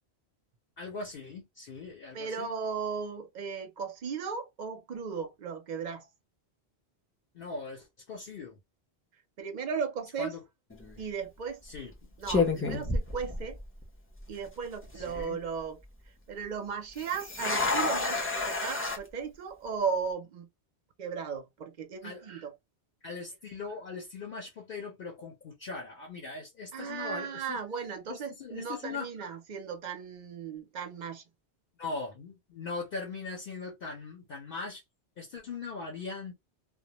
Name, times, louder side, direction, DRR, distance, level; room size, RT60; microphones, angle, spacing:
voice 1, 0.8-2.5 7.3-8.6 10.2-10.4 11.6-11.9 14.9-15.4 22.0-22.3 23.0-27.6 28.1-29.1 31.8-34.8 35.2-36.3, left 4 dB, 60° left, 0.8 m, -40 dB
voice 2, 2.1-6.1 9.4-10.3 11.0-11.6 12.2-13.6 14.3-15.8 16.3-20.5 21.0-22.5 26.7-31.2, right 6 dB, 55° right, 0.6 m, -36 dB
Shaving Cream, 10.7-11.0 11.7-11.9 12.3-13.8 14.1-14.2 14.8-15.2 17.0-19.0, left 3 dB, 15° left, 0.4 m, -30 dB
2.2 x 2.1 x 2.8 m
omnidirectional pair, 1.1 m